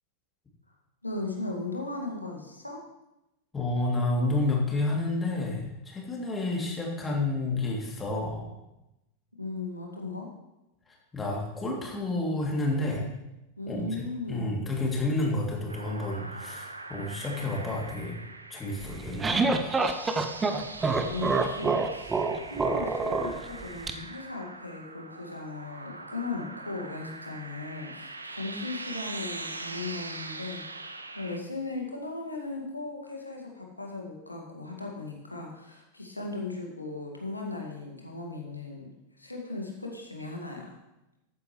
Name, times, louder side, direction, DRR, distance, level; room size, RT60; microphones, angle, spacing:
voice 1, 1.0-2.8 9.4-10.3 13.6-14.7 21.0-38.9 39.2-40.7, left 3 dB, 85° left, 0 dB, 1.9 m, -37 dB
voice 2, 3.5-8.4 10.9-13.0 13.7-14.0 14.3-18.1 18.5-19.5, left 2 dB, 15° left, -2 dB, 2.8 m, -30 dB
sound 1, 15.7-31.4, right 2 dB, 80° right, 0.7 m, -42 dB
sound 2, 18.8-23.9, right 3 dB, 15° right, 0.9 m, -27 dB
13.5 x 9.3 x 3.2 m, 0.93 s
figure-of-eight pair, 90°, 0 cm